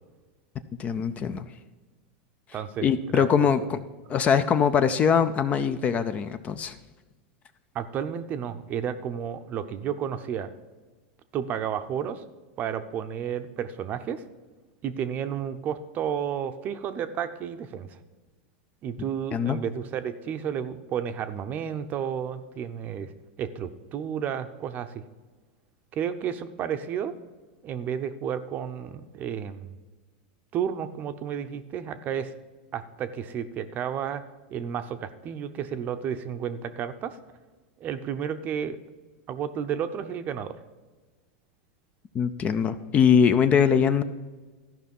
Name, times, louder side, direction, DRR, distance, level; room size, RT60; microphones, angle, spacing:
voice 1, 0.8-1.5 2.8-3.8 4.1-6.8 19.3-19.6 42.1-44.0, left 7 dB, 25° left, 11 dB, 0.5 m, -22 dB
voice 2, 2.5-2.9 3.1-3.5 7.7-10.5 11.3-12.2 12.6-14.2 14.8-18.0 18.8-23.1 23.4-25.0 25.9-27.1 27.6-29.8 30.5-32.3 32.7-34.2 34.5-37.2 37.8-38.8 39.3-40.6, right 8 dB, 30° right, 10 dB, 0.7 m, -32 dB
13.5 x 5.6 x 5.4 m, 1.3 s
supercardioid pair, 140°, 5 cm